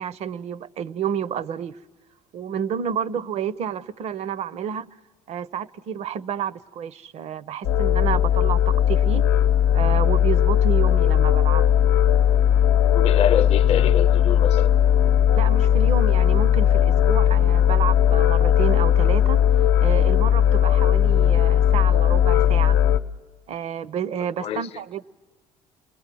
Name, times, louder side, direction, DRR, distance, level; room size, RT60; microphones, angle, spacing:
voice 1, 0.0-1.8 2.3-4.9 5.3-9.3 9.7-11.7 15.4-19.5 19.8-22.8 23.5-25.0, right 8 dB, 60° right, 0.7 m, -30 dB
sound 1, 7.6-23.0, left 10 dB, 85° left, 0.7 m, -18 dB
voice 2, 12.9-14.7 24.4-24.7, left 9 dB, 55° left, 0.7 m, -26 dB
28.0 x 20.5 x 7.6 m
supercardioid pair, 70°, 13 cm